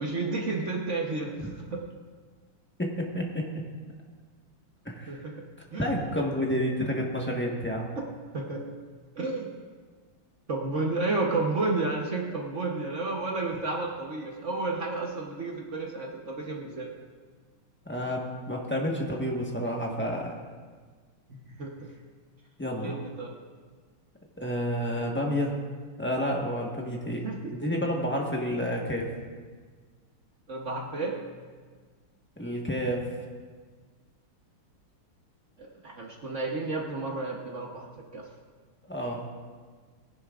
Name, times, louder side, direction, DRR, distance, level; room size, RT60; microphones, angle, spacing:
voice 1, 0.0-1.8 5.1-5.3 5.7-5.9 8.3-8.6 9.2-9.5 10.5-16.9 21.3-21.9 22.8-23.4 27.2-27.5 30.5-31.2 35.6-37.9 38.1-38.2, right 3 dB, 45° right, -1 dB, 1.0 m, -31 dB
voice 2, 2.8-3.4 4.8-5.1 5.8-7.9 17.9-20.4 22.6-23.0 24.4-25.5 26.0-27.2 27.5-29.1 32.4-33.0 38.9-39.3, equal, 10° left, -1 dB, 0.7 m, -30 dB
18.0 x 11.0 x 2.4 m, 1.5 s
omnidirectional pair, 2.4 m